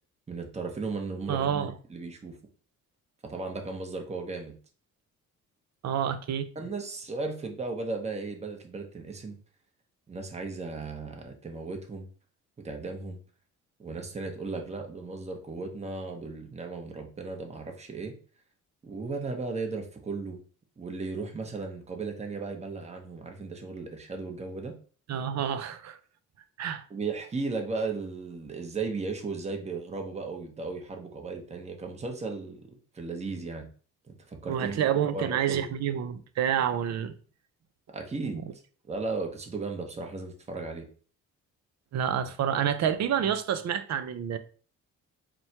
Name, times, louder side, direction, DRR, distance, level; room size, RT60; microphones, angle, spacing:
voice 1, 0.3-2.4 3.2-4.5 6.5-9.4 10.1-12.1 12.6-13.2 13.8-18.1 18.8-20.4 20.8-24.7 26.9-32.7 32.9-33.7 34.1-35.7 37.9-38.4 38.9-40.9, right 3 dB, 20° right, 0.9 m, -36 dB
voice 2, 1.3-1.7 5.8-6.5 25.1-26.0 26.6-26.8 34.5-37.1 38.3-38.4 41.9-44.4, right 9 dB, 60° right, 0.6 m, -28 dB
4.3 x 2.2 x 4.3 m
cardioid pair, 90°, 30 cm